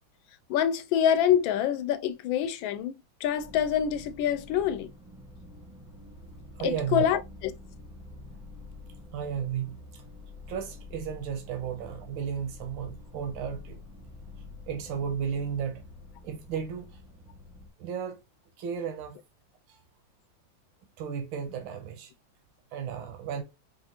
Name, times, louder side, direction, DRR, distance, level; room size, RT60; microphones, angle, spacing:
voice 1, 0.5-2.9 3.2-4.9 6.6-7.2, left 9 dB, 90° left, 1.4 m, -25 dB
sound 1, 3.4-17.7, left 2 dB, 5° right, 0.4 m, -47 dB
voice 2, 6.6-7.1 9.1-10.0 10.5-13.8 14.7-15.8 16.2-16.9 17.8-18.2 18.6-19.2 19.7-19.8 21.0-22.1 22.7-23.4, right 8 dB, 85° right, 1.5 m, -34 dB
5.6 x 2.4 x 2.8 m
omnidirectional pair, 2.1 m